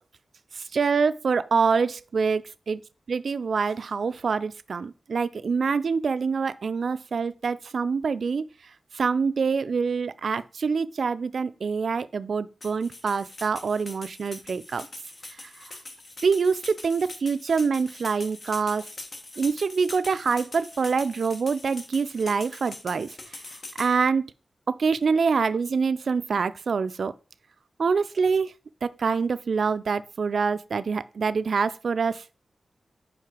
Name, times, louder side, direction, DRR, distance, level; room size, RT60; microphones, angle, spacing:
voice 1, 0.7-2.8 3.1-8.5 9.0-14.9 16.2-18.8 19.4-23.1 23.8-24.2 24.7-27.1 27.8-28.5 28.8-32.2, right 5 dB, 70° right, 0.3 m, -25 dB
sound 1, 12.6-23.9, left 2 dB, 50° left, 1.1 m, -42 dB
5.2 x 4.8 x 4.8 m
wide cardioid pair, 120°, 0 cm